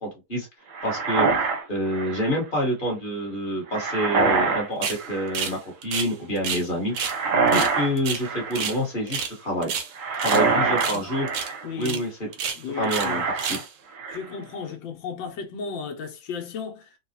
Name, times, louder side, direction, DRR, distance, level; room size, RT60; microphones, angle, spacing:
voice 1, 0.0-0.5 0.8-1.3 1.7-6.9 7.5-9.7 10.2-11.3 11.8-12.1 12.8-13.6, equal, 30° left, 1.4 m, -27 dB
sound 1, 0.7-2.4 3.7-4.7 4.9-5.5 7.0-7.9 8.2-8.8 10.0-11.7 12.8-13.6 13.9-14.4, right 4 dB, 55° right, 0.9 m, -25 dB
sound 2, 4.8-5.0 5.3-5.6 5.8-6.7 6.9-7.2 7.5-8.8 9.1-9.4 9.6-10.4 10.8-11.0 11.3-11.5 11.8-12.0 12.3-13.1 13.4-13.7, right 6 dB, 90° right, 1.6 m, -30 dB
voice 2, 10.3-11.1 11.6-12.0 12.5-13.3 14.1-16.9, left 6 dB, 75° left, 1.6 m, -35 dB
4.1 x 2.4 x 2.8 m
omnidirectional pair, 2.1 m